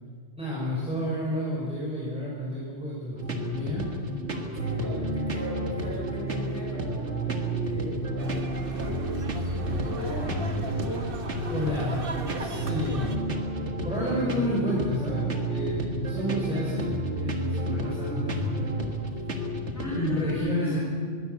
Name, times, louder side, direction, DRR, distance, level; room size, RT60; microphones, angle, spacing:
voice 1, 0.4-3.9 4.8-5.0 11.5-13.0 13.8-16.9 17.2-19.1 19.9-20.8, equal, 5° right, -7 dB, 5.5 m, -30 dB
sound 1, 3.2-20.3, right 1 dB, 70° right, 2.1 m, -31 dB
voice 2, 4.6-8.4 8.7-9.1 9.5-11.1 11.6-11.9 12.5-13.5 13.7-13.8 19.7-20.8, equal, 15° left, -5 dB, 8.1 m, -38 dB
sound 2, 8.2-13.2, right 3 dB, 50° right, 1.6 m, -37 dB
21.5 x 16.5 x 8.2 m, 2.2 s
omnidirectional pair, 1.2 m